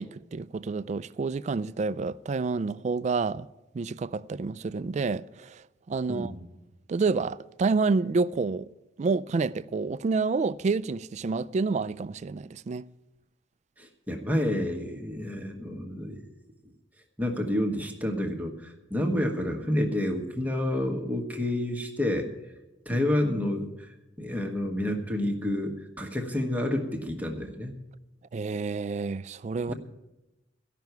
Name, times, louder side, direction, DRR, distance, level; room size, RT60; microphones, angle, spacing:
voice 1, 0.0-3.5 3.7-6.3 6.9-8.7 9.0-12.9 22.9-23.0 28.3-29.7, right 4 dB, 40° right, 0.3 m, -29 dB
voice 2, 6.1-6.4 13.8-16.2 17.2-22.3 22.8-27.8 29.7-29.8, left 1 dB, 10° right, 1.2 m, -29 dB
14.5 x 5.9 x 9.2 m
head